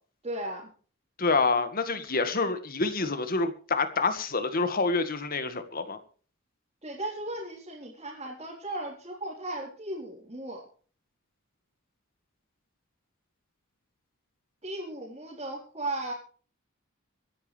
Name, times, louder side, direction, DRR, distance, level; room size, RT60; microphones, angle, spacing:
voice 1, 0.2-0.7 6.8-10.6 14.6-16.1, right 1 dB, 30° right, 4.0 m, -36 dB
voice 2, 1.2-6.0, left 3 dB, 45° left, 1.7 m, -27 dB
25.5 x 10.5 x 3.4 m
head